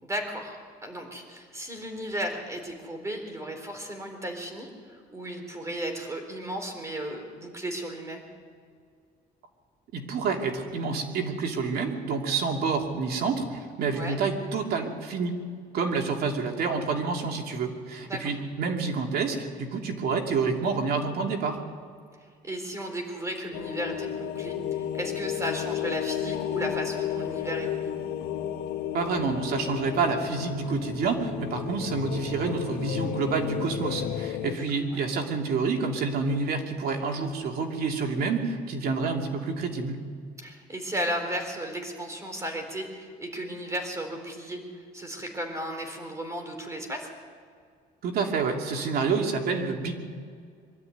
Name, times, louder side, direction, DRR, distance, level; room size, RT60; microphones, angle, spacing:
voice 1, 0.0-8.2 13.9-14.2 18.1-18.2 22.4-27.9 34.9-35.0 40.4-47.1, equal, 15° right, 4 dB, 4.1 m, -35 dB
voice 2, 9.9-15.4 15.7-21.6 28.9-40.0 48.0-49.9, right 4 dB, 65° right, 2 dB, 2.8 m, -28 dB
sound 1, 23.5-34.5, left 10 dB, 75° left, 1.4 m, -33 dB
23.0 x 13.0 x 9.4 m, 2.2 s
cardioid pair, 110°, 17 cm